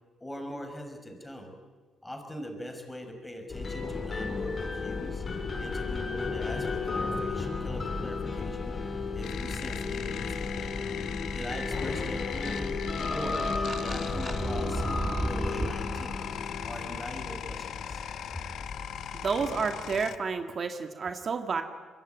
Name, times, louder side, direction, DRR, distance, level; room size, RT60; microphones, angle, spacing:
voice 1, 0.2-1.6 2.0-5.2 5.6-10.7 11.3-12.8 13.1-13.5 13.8-14.9 15.2-16.3 16.6-18.0, equal, 10° left, 4 dB, 5.9 m, -41 dB
sound 1, 3.5-20.0, left 4 dB, 35° left, 4.3 m, -34 dB
sound 2, 9.2-20.2, left 9 dB, 75° left, 1.2 m, -39 dB
sound 3, 12.4-15.9, right 1 dB, 15° right, 2.8 m, -34 dB
voice 2, 19.1-21.6, right 5 dB, 45° right, 7 dB, 2.1 m, -30 dB
24.5 x 22.5 x 9.5 m, 1.4 s
cardioid pair, 90°, 0 cm